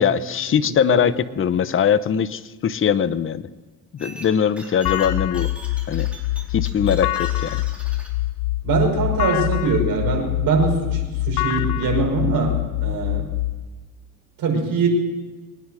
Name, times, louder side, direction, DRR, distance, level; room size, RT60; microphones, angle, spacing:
voice 1, 0.0-3.5 4.0-5.5 5.9-6.1 6.5-7.6, left 8 dB, 35° left, 13 dB, 0.8 m, -21 dB
sound 1, 4.0-8.1, right 1 dB, 5° right, 4.5 m, -42 dB
sound 2, 4.9-13.5, left 16 dB, 70° left, 0.8 m, -25 dB
voice 2, 8.6-13.3 14.4-14.9, right 4 dB, 60° right, 1 dB, 5.4 m, -22 dB
23.0 x 10.0 x 6.3 m, 1.3 s
cardioid pair, 95°, 39 cm